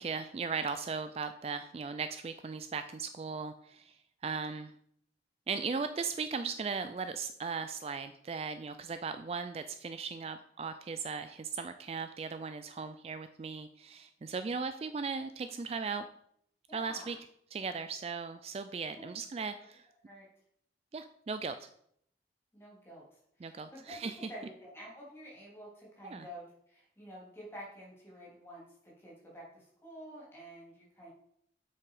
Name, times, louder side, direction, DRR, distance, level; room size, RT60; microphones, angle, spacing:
voice 1, 0.0-4.7 5.5-16.1 16.7-17.2 17.5-19.9 20.9-21.5 23.4-24.3 26.0-26.2, right 5 dB, 35° right, 10 dB, 0.3 m, -37 dB
voice 2, 16.7-17.2 18.9-19.5 20.0-20.3 22.5-31.1, equal, 15° left, -5 dB, 3.2 m, -50 dB
7.8 x 6.0 x 4.8 m, 0.70 s
head